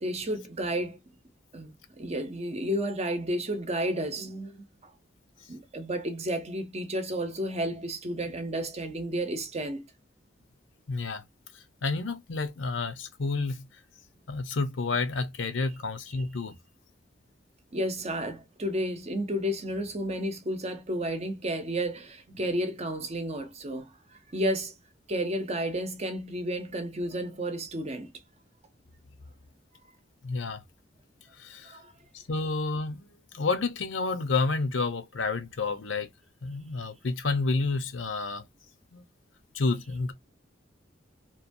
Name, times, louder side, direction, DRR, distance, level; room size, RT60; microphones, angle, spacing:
voice 1, 0.0-1.0 1.5-4.6 5.5-9.9 17.7-23.9 24.3-24.7 25.1-28.1 31.6-31.9, right 1 dB, 35° right, 0.7 m, -32 dB
voice 2, 10.9-11.2 11.8-13.6 14.3-16.5 30.2-30.6 31.4-31.8 32.3-33.1 33.3-36.1 36.4-38.4 38.9-39.1 39.5-40.1, left 3 dB, 85° left, 0.7 m, -30 dB
2.9 x 2.2 x 2.6 m
head